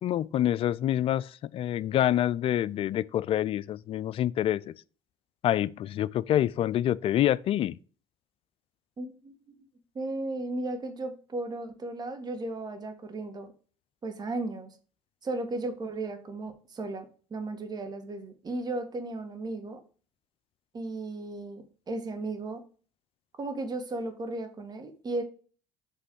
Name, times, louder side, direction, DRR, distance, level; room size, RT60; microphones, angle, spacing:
voice 1, 0.0-4.7 5.4-7.8, left 12 dB, 50° left, 0.4 m, -27 dB
voice 2, 9.0-9.6 10.0-13.5 14.0-14.7 15.2-19.8 20.7-22.6 23.4-25.2, right 2 dB, 35° right, 1.8 m, -35 dB
7.6 x 3.2 x 6.3 m
supercardioid pair, 80°, 12 cm